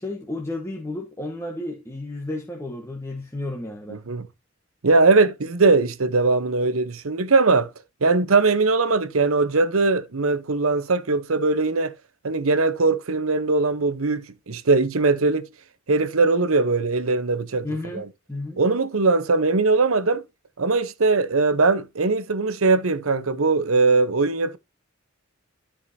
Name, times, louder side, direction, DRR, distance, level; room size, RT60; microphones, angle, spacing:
voice 1, 0.0-4.0 17.6-18.6, left 2 dB, 15° left, 1.2 m, -32 dB
voice 2, 3.9-4.3 4.8-7.7 8.0-11.9 12.2-15.5 15.9-17.7 17.9-18.1 18.6-20.2 20.6-24.6, right 3 dB, 85° right, 0.9 m, -20 dB
13.0 x 5.0 x 2.7 m
head